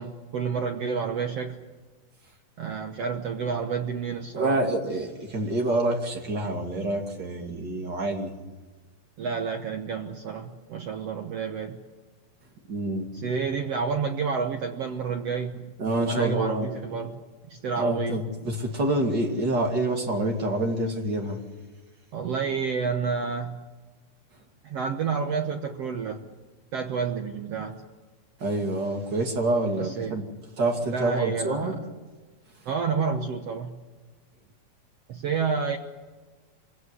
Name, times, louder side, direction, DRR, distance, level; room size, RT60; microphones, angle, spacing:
voice 1, 0.0-1.6 2.6-4.6 9.2-11.8 13.1-15.7 16.0-17.2 17.5-18.2 22.1-23.6 24.6-26.2 26.7-27.8 29.8-30.2 30.8-31.8 32.6-33.8 35.1-35.8, right 5 dB, 65° right, 5 dB, 1.6 m, -29 dB
voice 2, 4.3-8.3 12.7-13.1 15.8-16.7 17.8-21.4 28.4-30.2 30.6-31.7, right 2 dB, 30° right, 2 dB, 2.7 m, -27 dB
25.5 x 17.5 x 9.7 m, 1.3 s
omnidirectional pair, 4.2 m